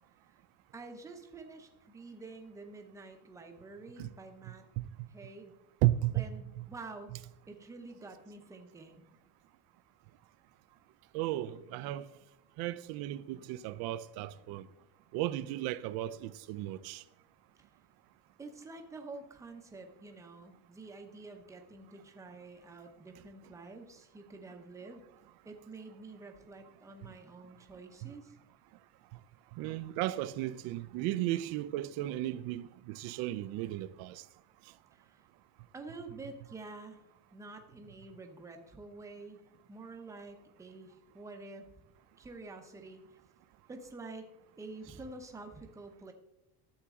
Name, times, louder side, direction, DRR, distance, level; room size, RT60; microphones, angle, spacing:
voice 1, 0.7-4.7 5.1-5.5 6.1-7.2 7.5-9.1 17.6-17.7 18.4-25.0 25.4-28.3 34.9-35.2 35.7-37.0 37.3-39.4 39.7-41.7 42.2-43.2 43.7-44.3 44.6-46.1, right 3 dB, 10° right, 0.6 m, -48 dB
voice 2, 5.8-6.3 6.6-6.7 11.1-12.0 12.6-14.6 15.1-17.0 29.6-34.2, right 15 dB, 80° right, 0.5 m, -34 dB
11.5 x 7.2 x 3.6 m
cardioid pair, 180°, 36 cm